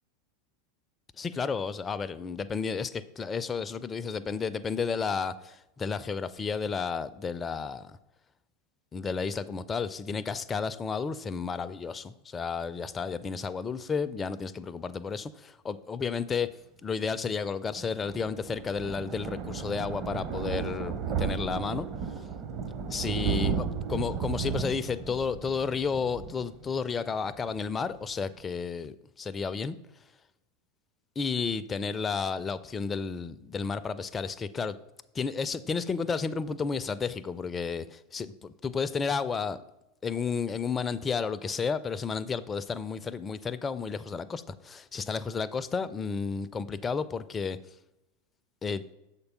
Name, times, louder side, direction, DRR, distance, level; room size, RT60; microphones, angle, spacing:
voice 1, 1.2-8.0 8.9-16.5 16.8-21.9 22.9-29.8 31.2-34.8 35.1-39.6 40.0-47.6 48.6-48.8, left 5 dB, 20° left, 13 dB, 0.4 m, -32 dB
Thunder, 17.7-27.1 27.5-27.7 28.0-28.1 28.3-28.4, right 6 dB, 40° right, 0.7 m, -34 dB
6.8 x 4.5 x 5.4 m, 0.92 s
figure-of-eight pair, 85°, 0 cm